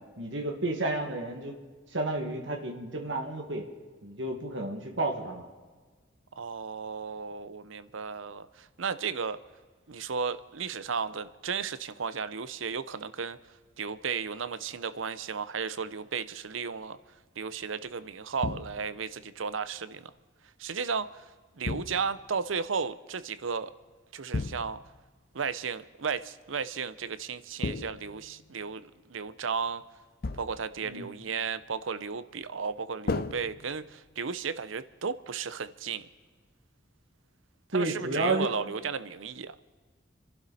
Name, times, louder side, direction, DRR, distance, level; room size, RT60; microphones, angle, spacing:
voice 1, 0.2-1.6 1.9-3.6 4.0-5.5 30.8-31.1 37.7-38.5, right 2 dB, 70° right, 1 dB, 2.1 m, -31 dB
voice 2, 6.4-9.4 9.9-13.4 13.8-17.0 17.4-20.1 20.6-21.2 21.6-23.7 24.1-24.8 25.3-28.8 29.1-29.8 30.4-36.1 37.7-39.5, right 5 dB, 90° right, 15 dB, 0.7 m, -34 dB
sound 1, 18.4-19.1 21.7-22.3 24.3-25.0 27.6-28.5 30.2-30.8 33.1-34.1, left 3 dB, 50° left, 0.6 m, -35 dB
29.0 x 11.5 x 4.2 m, 1.4 s
head